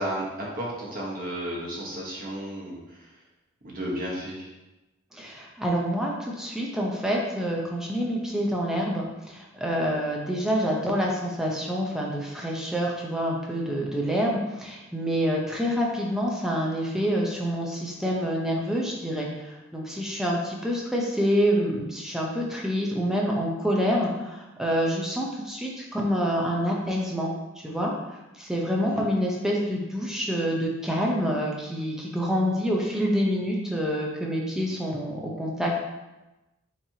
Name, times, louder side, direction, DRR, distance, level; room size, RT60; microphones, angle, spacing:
voice 1, 0.0-3.1 3.6-4.5 28.8-29.0, equal, 45° right, -4 dB, 1.2 m, -33 dB
voice 2, 5.1-27.9 28.4-35.8, equal, 5° right, -2 dB, 0.6 m, -27 dB
5.7 x 3.3 x 2.8 m, 1.0 s
head